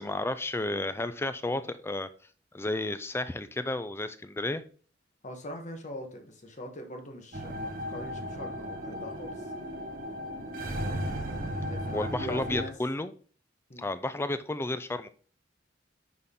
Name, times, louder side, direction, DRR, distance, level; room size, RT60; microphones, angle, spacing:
voice 1, 0.0-2.1 2.5-4.6 11.9-13.1 13.8-15.1, left 2 dB, 15° left, 12 dB, 0.4 m, -32 dB
voice 2, 5.2-9.5 11.6-12.7 13.7-13.9, left 1 dB, 40° left, 4 dB, 1.3 m, -42 dB
sound 1, 7.3-12.6, equal, 50° right, 1.3 m, -35 dB
9.8 x 3.7 x 3.8 m, 0.41 s
head